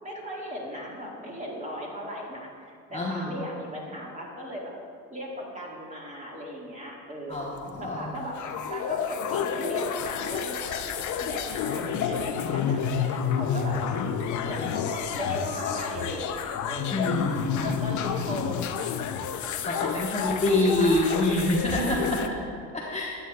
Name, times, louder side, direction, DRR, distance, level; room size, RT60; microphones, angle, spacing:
voice 1, 0.0-4.7 5.1-7.5 7.8-13.9 14.4-17.1 17.6-18.9 19.5-21.5, equal, 20° right, -3 dB, 1.8 m, -37 dB
voice 2, 2.9-3.4 7.3-8.1 16.9-17.7 19.6-22.4 22.7-23.2, left 1 dB, 15° left, -4 dB, 1.0 m, -26 dB
sound 1, 7.3-22.3, left 7 dB, 50° left, 0.6 m, -30 dB
9.2 x 8.1 x 2.3 m, 2.2 s
supercardioid pair, 75°, 40 cm